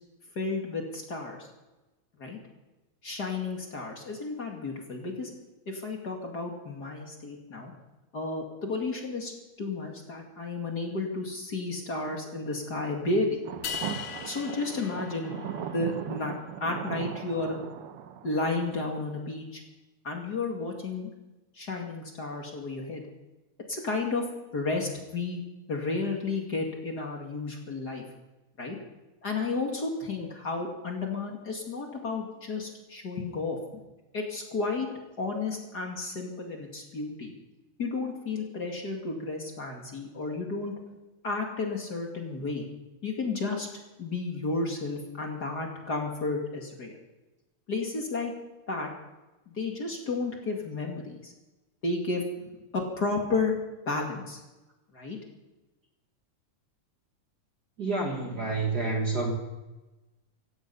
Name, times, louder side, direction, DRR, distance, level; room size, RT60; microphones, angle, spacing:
voice 1, 0.4-1.5 2.2-2.4 3.0-5.3 5.7-7.7 8.1-9.3 9.6-13.4 14.2-15.3 15.6-16.3 16.6-17.6 18.2-19.6 20.0-21.1 21.5-23.0 23.7-24.2 24.5-25.4 25.7-28.0 28.6-28.8 29.2-33.8 34.1-34.9 35.2-37.3 37.8-40.7 41.2-42.7 43.0-43.7 44.0-46.9 47.7-48.3 48.7-48.9 49.5-51.3 51.8-52.2 52.7-53.5 53.9-54.4 54.9-55.2, left 3 dB, 35° left, 1 dB, 2.5 m, -32 dB
sound 1, 13.4-18.8, right 9 dB, 65° right, 1.6 m, -38 dB
sound 2, 13.6-15.9, left 8 dB, 65° left, 1.4 m, -39 dB
voice 2, 57.8-59.4, right 3 dB, 40° right, 1 dB, 1.9 m, -28 dB
17.0 x 14.5 x 5.5 m, 1.1 s
omnidirectional pair, 3.3 m